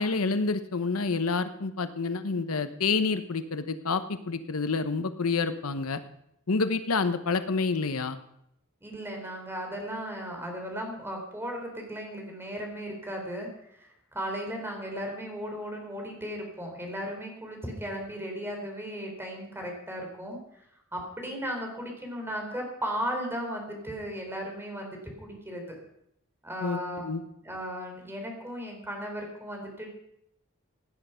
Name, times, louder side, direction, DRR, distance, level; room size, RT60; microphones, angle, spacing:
voice 1, 0.0-6.0 6.5-8.2 26.6-26.8 27.0-27.2, left 4 dB, 75° left, 11 dB, 0.9 m, -28 dB
voice 2, 8.8-20.4 20.9-25.8 26.4-27.1 27.4-29.9, equal, 10° right, 2 dB, 3.7 m, -36 dB
17.5 x 10.5 x 5.7 m, 0.75 s
head